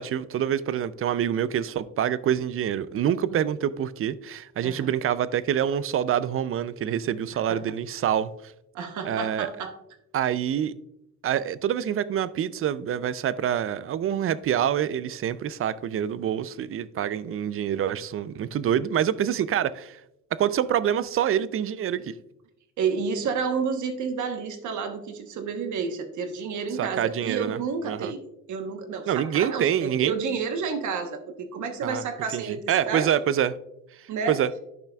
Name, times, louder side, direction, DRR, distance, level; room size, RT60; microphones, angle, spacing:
voice 1, 0.0-8.3 9.0-9.5 10.1-10.7 11.2-20.0 20.3-22.1 26.8-27.6 27.8-28.1 29.1-30.1 31.8-32.0 32.3-33.6 34.3-34.5, right 9 dB, 45° right, 0.4 m, -26 dB
voice 2, 8.7-9.7 22.8-28.2 28.5-33.1 34.1-34.4, right 5 dB, 75° right, 1.1 m, -30 dB
10.5 x 5.7 x 2.3 m
cardioid pair, 90°, 30 cm